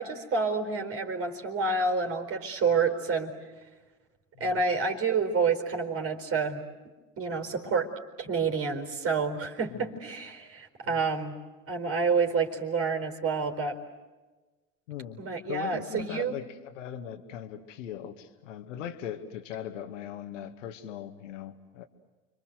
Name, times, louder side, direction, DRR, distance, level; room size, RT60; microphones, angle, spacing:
voice 1, 0.0-3.4 4.4-6.6 7.2-7.9 8.2-11.3 11.7-13.8 15.2-16.4, right 4 dB, 35° right, 5 dB, 4.2 m, -28 dB
voice 2, 14.9-21.9, left 10 dB, 70° left, 8 dB, 2.2 m, -40 dB
30.0 x 25.0 x 7.9 m, 1.2 s
hypercardioid pair, 75°, 39 cm